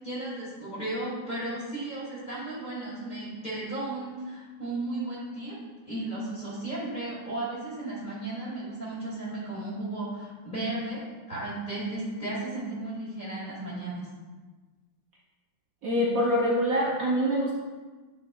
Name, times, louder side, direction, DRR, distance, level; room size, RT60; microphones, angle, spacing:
voice 1, 0.0-5.6 5.9-14.1, right 2 dB, 20° left, -9 dB, 2.3 m, -35 dB
voice 2, 15.8-17.6, equal, 65° right, -3 dB, 0.9 m, -25 dB
8.7 x 6.1 x 2.3 m, 1.3 s
omnidirectional pair, 2.3 m